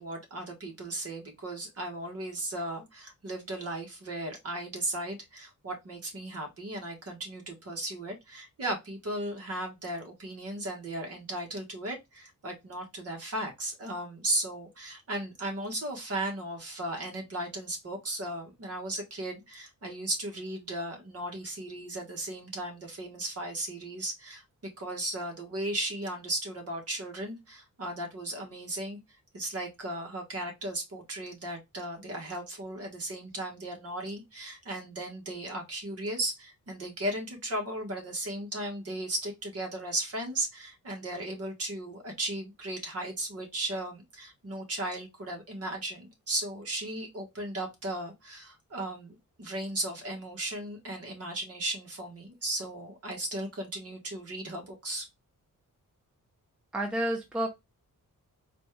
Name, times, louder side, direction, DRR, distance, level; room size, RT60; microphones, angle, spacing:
voice 1, 0.0-24.4 24.8-55.1, right 1 dB, 45° right, 1.4 m, -36 dB
voice 2, 56.7-57.5, right 1 dB, 5° right, 0.6 m, -29 dB
4.1 x 2.4 x 3.2 m
wide cardioid pair, 160°, 33 cm